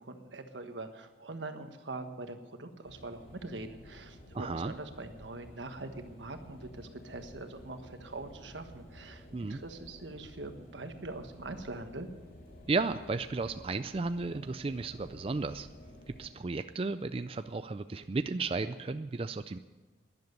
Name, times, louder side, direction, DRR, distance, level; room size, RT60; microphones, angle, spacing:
voice 1, 0.0-12.1, right 2 dB, 85° right, 7 dB, 1.4 m, -43 dB
sound 1, 2.8-16.3, left 1 dB, 50° left, 3.0 m, -53 dB
voice 2, 4.3-4.7 9.3-9.6 12.7-15.7 16.2-19.6, right 3 dB, 30° right, 10 dB, 0.4 m, -34 dB
12.0 x 10.5 x 9.5 m, 1.2 s
head